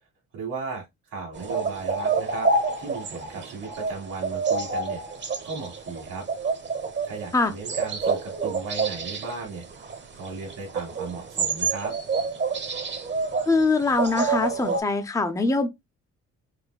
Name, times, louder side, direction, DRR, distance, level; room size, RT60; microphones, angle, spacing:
voice 1, 0.3-2.5 2.8-5.0 5.4-6.3 7.0-9.6 10.2-11.9, right 4 dB, 90° right, 1.7 m, -36 dB
sound 1, 1.3-14.8, right 4 dB, 35° right, 0.9 m, -28 dB
voice 2, 13.5-15.7, left 3 dB, 10° left, 0.6 m, -23 dB
4.8 x 2.1 x 2.3 m
cardioid pair, 90°, 30 cm